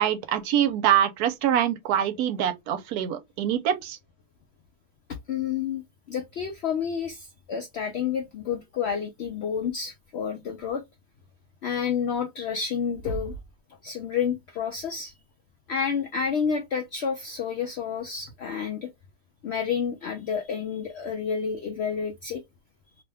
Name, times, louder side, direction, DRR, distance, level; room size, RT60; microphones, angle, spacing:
voice 1, 0.0-4.0, right 10 dB, 80° right, 1.1 m, -24 dB
voice 2, 5.3-5.8 6.1-10.8 11.6-13.3 13.8-15.1 15.7-18.9 19.4-22.4, left 7 dB, 80° left, 0.5 m, -29 dB
sound 1, 12.6-12.7 12.9-13.6 15.3-15.4 17.2-17.4 18.3-18.4, right 2 dB, 55° left, 1.1 m, -36 dB
2.8 x 2.2 x 3.3 m
omnidirectional pair, 1.7 m